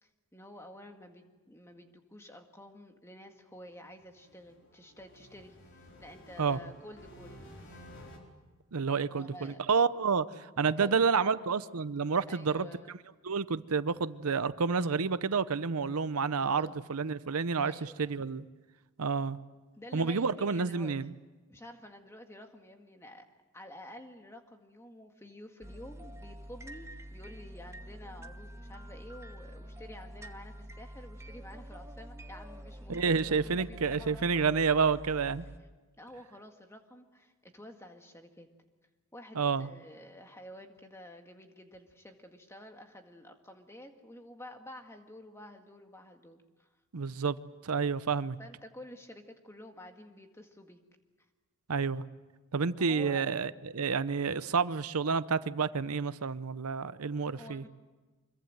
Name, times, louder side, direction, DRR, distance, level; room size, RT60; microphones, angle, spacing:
voice 1, 0.0-7.5 9.0-9.6 10.6-11.3 12.3-13.0 16.4-16.8 17.6-18.1 19.7-21.0 21.5-23.3 23.5-34.5 34.9-35.0 36.0-38.5 39.1-46.7 48.4-50.8 52.8-53.3 57.3-57.7, left 1 dB, 10° left, 4 dB, 1.9 m, -50 dB
sound 1, 3.8-8.2, equal, 55° left, 4.7 m, -53 dB
voice 2, 8.7-12.7 13.2-18.4 19.0-19.4 19.9-21.1 32.9-35.4 39.3-39.7 46.9-47.4 47.6-48.4 51.7-52.0 52.5-57.6, right 5 dB, 80° right, 15 dB, 0.7 m, -29 dB
sound 2, 25.6-35.6, equal, 10° right, 1.1 m, -47 dB
25.5 x 22.5 x 7.9 m, 1.2 s
head